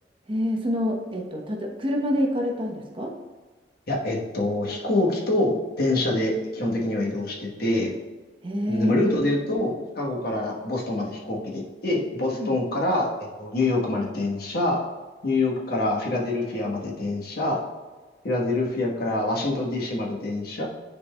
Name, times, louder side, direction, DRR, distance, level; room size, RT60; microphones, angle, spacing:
voice 1, 0.3-3.1 8.4-8.9 12.3-12.6, equal, 30° right, 1 dB, 0.8 m, -27 dB
voice 2, 3.9-7.9 8.7-14.8 15.2-17.6 18.2-20.7, left 2 dB, 60° left, -2 dB, 1.2 m, -25 dB
10.0 x 4.3 x 2.2 m, 1.3 s
head